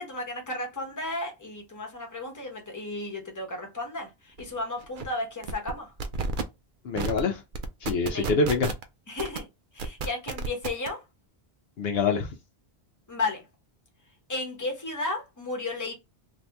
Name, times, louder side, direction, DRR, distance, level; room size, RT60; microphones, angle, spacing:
voice 1, 0.0-5.9 8.1-8.3 9.1-9.5 9.7-11.0 13.1-13.5 14.3-15.9, left 2 dB, 20° left, 0.9 m, -33 dB
sound 1, 4.4-4.5 4.8-5.1 5.4-5.7 6.0-6.4 7.0-7.2 7.5-8.8 9.2-9.4 9.8-10.9, right 4 dB, 60° right, 0.6 m, -31 dB
voice 2, 6.8-7.4 7.8-8.7 11.8-12.4, left 4 dB, 70° left, 0.8 m, -25 dB
2.7 x 2.5 x 3.3 m
omnidirectional pair, 1.1 m